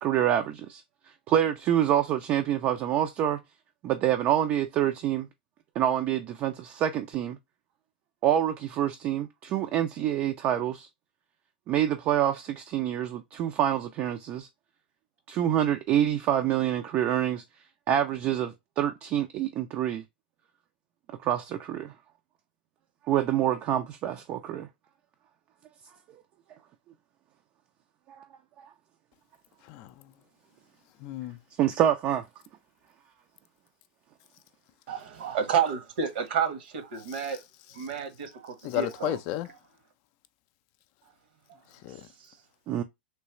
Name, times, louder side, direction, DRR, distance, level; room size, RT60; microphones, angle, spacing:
voice 1, 0.0-0.8 1.3-3.4 3.8-5.3 5.8-7.4 8.2-10.9 11.7-14.5 15.3-17.4 17.9-20.0 21.2-21.9 23.1-24.7 28.2-28.3 28.6-28.7 31.6-32.2 42.7-42.8, right 11 dB, 35° right, 0.5 m, -26 dB
voice 2, 29.6-30.1 31.0-31.4 37.1-37.2 38.6-39.5 41.7-42.1, left 13 dB, 45° left, 0.4 m, -33 dB
voice 3, 34.9-37.4 37.7-39.2 42.2-42.3, right 7 dB, 60° right, 1.2 m, -30 dB
3.2 x 3.0 x 2.9 m
hypercardioid pair, 110°, 6 cm